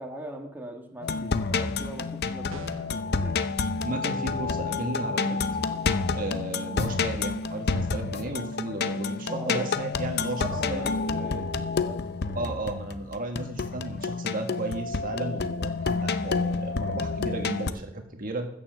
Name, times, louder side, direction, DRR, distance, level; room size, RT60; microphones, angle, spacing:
voice 1, 0.0-3.4 9.3-9.7 10.4-12.0 12.3-12.5, right 1 dB, 10° right, 1 dB, 1.6 m, -40 dB
sound 1, 1.0-17.7, left 4 dB, 55° left, 0.6 m, -29 dB
sound 2, 2.5-3.0, right 3 dB, 80° right, 0.8 m, -43 dB
voice 2, 3.8-5.4 6.1-10.4 10.7-10.9 12.3-18.5, right 2 dB, 45° right, 4 dB, 1.5 m, -34 dB
15.0 x 7.2 x 6.7 m, 0.74 s
head